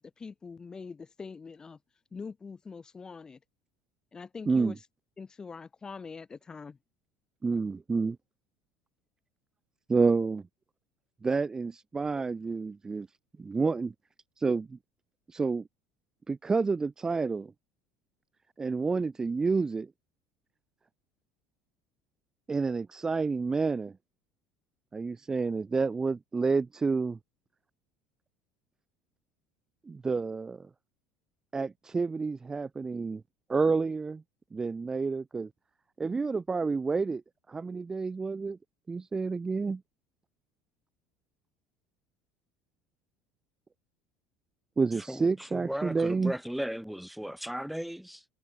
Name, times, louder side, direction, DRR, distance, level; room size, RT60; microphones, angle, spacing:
voice 1, 0.0-1.8 2.1-3.4 4.1-4.9 5.2-6.8, left 5 dB, 25° left, 1.3 m, -43 dB
voice 2, 7.4-8.2 9.9-10.4 11.2-13.1 13.4-13.9 14.4-14.8 15.3-15.6 16.3-17.5 18.6-19.9 22.5-23.9 24.9-27.2 29.9-30.7 31.5-33.2 33.5-34.2 34.5-35.5 36.0-37.2 37.5-38.6 38.9-39.8 44.8-46.3, right 4 dB, 20° right, 1.0 m, -29 dB
voice 3, 45.0-48.2, equal, ahead, 2.5 m, -36 dB
hypercardioid pair, 70°, 3 cm